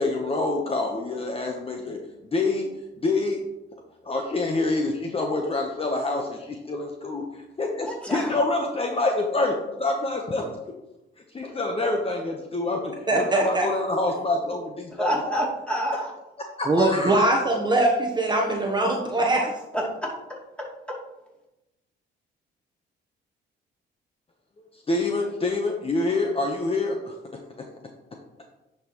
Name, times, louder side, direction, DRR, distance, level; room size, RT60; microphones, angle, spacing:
voice 1, 0.0-2.0 2.2-3.4 4.0-9.5 9.8-10.5 11.3-15.2 16.6-17.2 24.6-27.2, left 2 dB, 30° left, 2 dB, 0.9 m, -26 dB
voice 2, 7.8-8.3 14.9-16.1 19.7-21.0, equal, 5° left, -4 dB, 2.7 m, -29 dB
voice 3, 13.1-13.7 16.7-19.5, right 2 dB, 20° right, 0 dB, 1.0 m, -22 dB
9.8 x 5.5 x 3.0 m, 0.97 s
cardioid pair, 90°, 20 cm